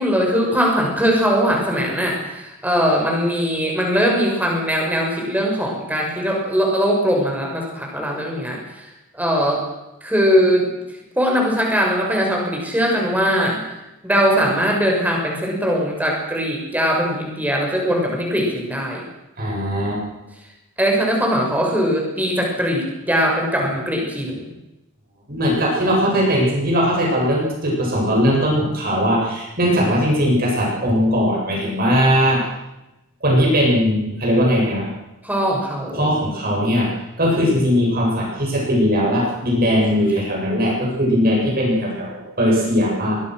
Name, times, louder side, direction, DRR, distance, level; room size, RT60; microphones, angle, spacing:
voice 1, 0.0-9.6 10.0-10.7 11.2-13.7 14.0-19.0 20.8-24.5 35.2-36.1, equal, 5° right, 0 dB, 6.6 m, -20 dB
voice 2, 19.4-20.0 25.3-32.4 33.2-34.9 36.0-36.9 37.2-43.2, equal, 40° right, -2 dB, 7.9 m, -19 dB
23.5 x 22.0 x 6.5 m, 0.95 s
head